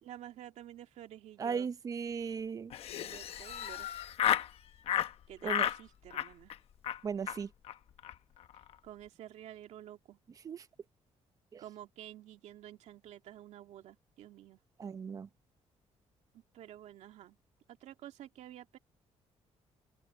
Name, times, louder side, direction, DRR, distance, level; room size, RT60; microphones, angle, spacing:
voice 1, 0.0-1.7 3.0-3.9 5.3-6.5 8.8-10.2 11.6-14.6 16.3-17.4 17.7-18.8, right 12 dB, 85° right, 2.4 m, -50 dB
voice 2, 1.4-2.7 5.4-5.7 7.0-7.5 10.4-10.6 11.5-11.6 14.8-15.3, right 6 dB, 30° right, 0.6 m, -37 dB
Laughter, 2.7-4.5 4.9-5.1 5.4-5.8 6.1-6.6 6.8-7.0 7.3-7.4 7.6-7.7 8.0-8.1 8.4-8.7, left 10 dB, 60° left, 1.0 m, -33 dB
open air
cardioid pair, 180°, 11 cm